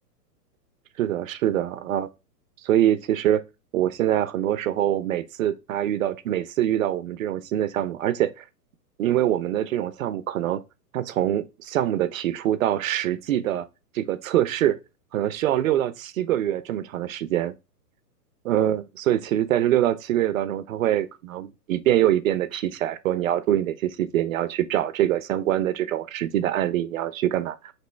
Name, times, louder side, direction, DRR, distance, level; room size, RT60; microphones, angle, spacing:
voice 1, 1.0-2.1 2.6-3.4 3.7-8.4 9.0-10.6 10.9-13.7 13.9-14.8 15.1-17.5 18.4-27.7, right 12 dB, 55° right, 0.5 m, -24 dB
3.0 x 3.0 x 4.4 m
hypercardioid pair, 145°, 48 cm